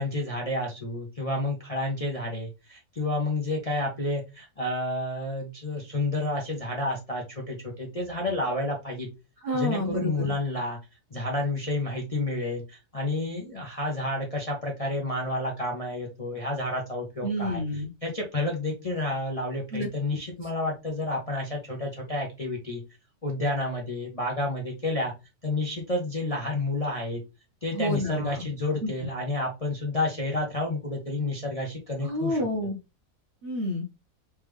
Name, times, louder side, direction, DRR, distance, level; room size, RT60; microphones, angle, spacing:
voice 1, 0.0-9.1 9.5-10.8 11.1-17.6 18.0-22.8 23.2-25.1 25.4-27.2 27.6-32.4, left 2 dB, 35° left, -1 dB, 0.6 m, -30 dB
voice 2, 9.4-10.3 17.2-17.9 19.7-19.9 27.7-28.4 28.8-29.1 32.0-32.8 33.4-33.9, left 1 dB, 55° right, 2 dB, 0.8 m, -29 dB
3.3 x 3.3 x 3.4 m, 0.27 s
omnidirectional pair, 1.7 m